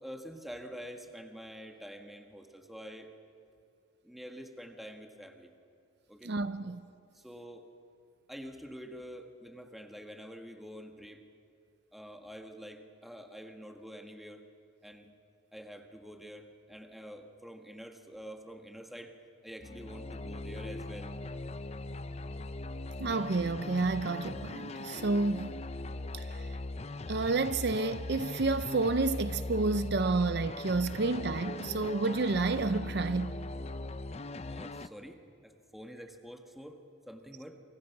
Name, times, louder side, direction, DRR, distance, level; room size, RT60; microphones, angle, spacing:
voice 1, 0.0-3.1 4.0-5.5 6.1-6.3 6.6-6.7 7.1-7.7 8.3-11.2 11.9-14.5 14.8-15.1 15.5-19.2 19.4-21.1 34.4-37.6, equal, ahead, 1.6 m, -47 dB
voice 2, 6.2-6.8 23.0-25.6 26.1-26.6 27.1-33.4, right 3 dB, 55° right, 0.6 m, -30 dB
sound 1, 19.6-34.9, left 2 dB, 30° left, 0.6 m, -40 dB
29.0 x 25.0 x 6.0 m
head